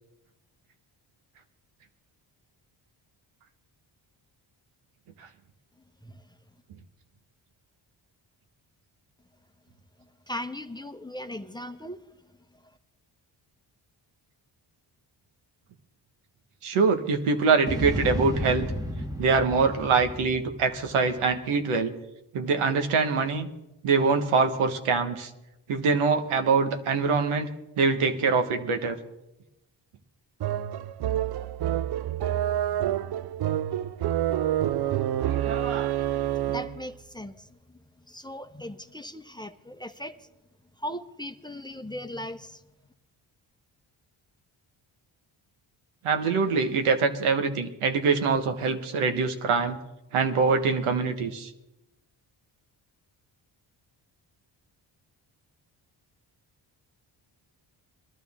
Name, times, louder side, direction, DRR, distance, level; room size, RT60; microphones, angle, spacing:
voice 1, 10.3-12.0 36.3-37.6 38.1-40.2 40.8-42.6, left 1 dB, 10° left, 8 dB, 0.8 m, -38 dB
voice 2, 16.6-18.7 19.2-21.9 22.3-23.5 23.8-25.3 25.7-27.5 27.8-29.0 35.2-35.9 46.0-49.8 50.1-51.5, right 4 dB, 85° right, 6 dB, 1.4 m, -24 dB
sound 1, 17.7-21.2, equal, 10° right, 1.6 m, -32 dB
sound 2, 30.4-36.9, right 12 dB, 55° right, 0.5 m, -27 dB
21.0 x 12.0 x 3.6 m, 0.93 s
cardioid pair, 60°, 49 cm